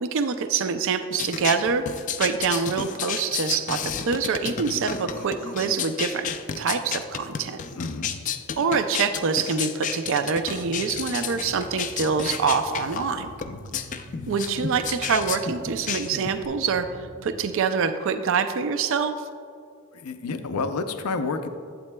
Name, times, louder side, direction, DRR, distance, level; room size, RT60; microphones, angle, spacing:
voice 1, 0.0-1.9 2.2-6.3 6.6-7.6 8.6-13.3 14.3-16.9 17.2-19.2, right 5 dB, 60° right, 9 dB, 0.4 m, -25 dB
sound 1, 1.1-16.5, left 7 dB, 35° left, 0.3 m, -32 dB
voice 2, 7.8-8.2 13.4-13.8 19.9-21.5, left 4 dB, 90° left, 9 dB, 0.5 m, -30 dB
sound 2, 10.5-17.4, left 1 dB, 75° right, 1.5 m, -45 dB
11.5 x 8.1 x 2.2 m, 2.3 s
head